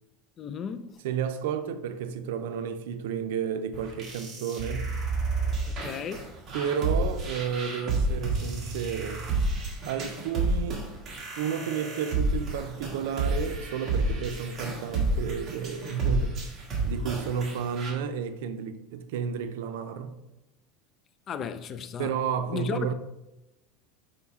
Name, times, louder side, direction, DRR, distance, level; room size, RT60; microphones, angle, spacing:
voice 1, 0.4-0.9 5.8-6.3 21.3-22.1 22.5-22.9, left 7 dB, 30° left, 0.3 m, -34 dB
voice 2, 1.0-4.9 6.5-9.2 9.9-10.9 11.4-16.4 16.8-20.2 22.0-22.9, right 7 dB, 80° right, 0.5 m, -32 dB
sound 1, 3.7-17.9, right 2 dB, 30° right, 1.6 m, -30 dB
5.5 x 5.0 x 3.6 m
supercardioid pair, 145°, 0 cm